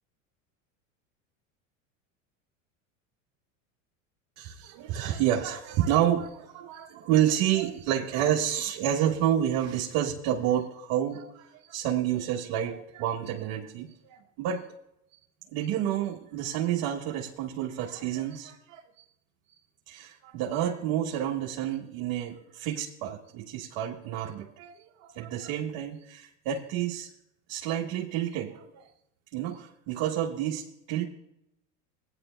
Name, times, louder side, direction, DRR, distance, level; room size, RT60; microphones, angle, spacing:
voice 1, 4.4-14.6 15.5-18.8 19.9-27.1 27.5-28.9 29.3-31.0, right 11 dB, 60° right, 0 dB, 1.3 m, -29 dB
18.0 x 9.9 x 2.2 m, 0.81 s
supercardioid pair, 105°, 40 cm